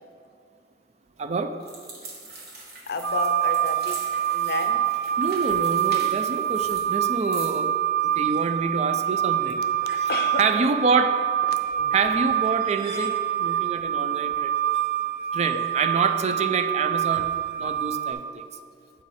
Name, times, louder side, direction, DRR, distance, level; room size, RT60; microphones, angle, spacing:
voice 1, 1.2-1.5 5.2-7.8 8.2-9.6 10.0-10.1 10.4-11.2 11.9-14.6 15.3-17.3 17.6-18.2, right 4 dB, 40° right, 9 dB, 0.3 m, -26 dB
sound 1, 1.6-7.7, right 2 dB, 60° right, 1.3 m, -43 dB
voice 2, 2.9-4.0 4.3-4.8 5.9-6.1 9.6-10.4 11.5-12.0, left 3 dB, 60° left, 7 dB, 0.5 m, -32 dB
sound 2, 3.0-18.1, right 11 dB, 80° right, 0.8 m, -25 dB
8.1 x 4.1 x 4.8 m, 2.3 s
head